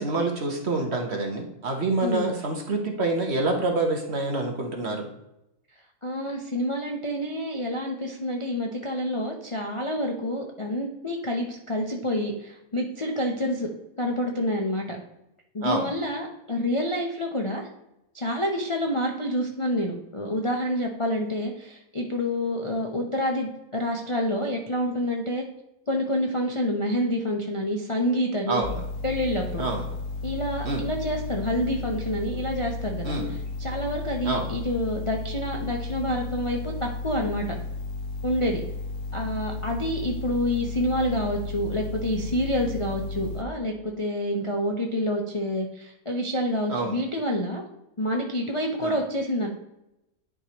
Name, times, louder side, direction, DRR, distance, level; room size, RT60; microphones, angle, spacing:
voice 1, 0.0-5.1 15.6-15.9 28.5-28.8 29.6-29.8 30.6-30.8 33.0-33.3 34.2-34.5 46.7-47.0 48.8-49.0, right 2 dB, 45° right, 2 dB, 1.2 m, -27 dB
voice 2, 2.0-2.4 6.0-13.7 14.0-15.0 15.5-17.7 18.1-25.4 25.9-28.6 29.0-29.6 30.2-37.6 38.2-38.6 39.1-47.6 48.0-49.5, equal, 30° left, 0 dB, 0.5 m, -28 dB
sound 1, 28.6-43.4, left 3 dB, 60° left, 1.1 m, -34 dB
10.5 x 4.8 x 3.0 m, 0.88 s
omnidirectional pair, 1.7 m